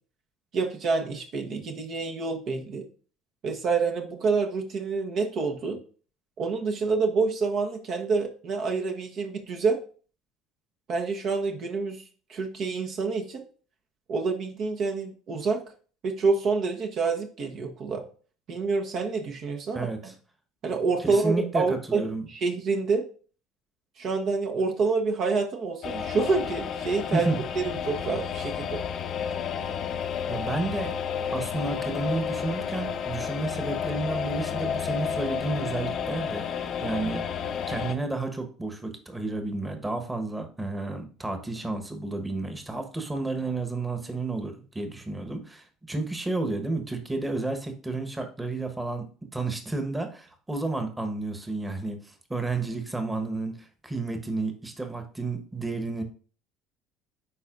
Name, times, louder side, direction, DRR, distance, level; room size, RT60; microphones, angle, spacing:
voice 1, 0.5-2.8 3.4-5.8 6.4-9.8 10.9-12.0 12.3-13.4 14.1-15.6 16.0-18.0 18.5-20.1 20.6-23.1 24.0-27.3 27.5-28.8, right 4 dB, 50° right, 3 dB, 1.1 m, -27 dB
voice 2, 19.7-20.1 21.0-22.2 27.1-27.4 30.3-30.9 31.3-37.2 37.7-49.1 49.3-56.0, right 3 dB, 15° right, 6 dB, 1.3 m, -31 dB
sound 1, 25.8-37.9, left 7 dB, 50° left, 0.7 m, -31 dB
10.0 x 4.1 x 2.6 m, 0.40 s
hypercardioid pair, 70°, 0 cm